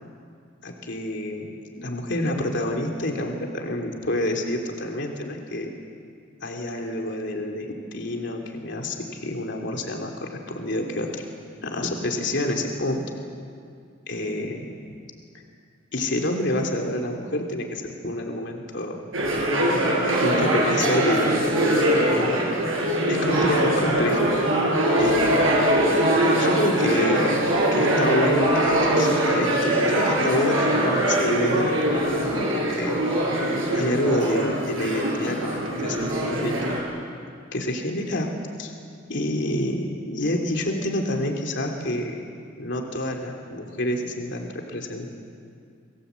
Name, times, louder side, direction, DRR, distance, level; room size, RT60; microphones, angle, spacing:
voice 1, 0.6-1.5 1.8-5.7 6.4-11.2 11.6-13.0 14.1-15.0 15.9-19.0 19.7-21.6 21.9-22.4 23.1-24.3 25.0-25.5 26.4-27.3 27.7-33.0 33.7-36.8 37.5-38.3 38.6-38.7 39.1-42.2 42.6-45.1, left 1 dB, 60° left, 2 dB, 3.2 m, -28 dB
sound 1, 19.1-36.8, right 1 dB, 85° right, 7.9 m, -22 dB
28.0 x 23.0 x 8.3 m, 2.3 s
head